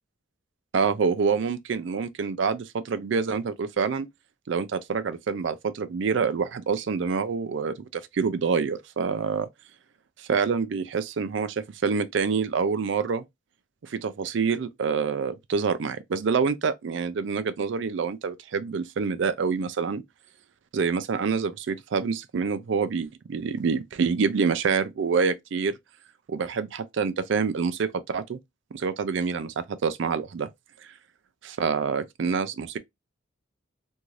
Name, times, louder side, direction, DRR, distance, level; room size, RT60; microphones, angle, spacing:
voice 1, 0.7-4.1 4.5-9.5 10.2-13.2 13.8-20.0 20.7-25.8 26.3-28.4 28.7-30.5 31.4-32.8, right 5 dB, 60° right, 0.4 m, -27 dB
2.6 x 2.4 x 3.0 m
head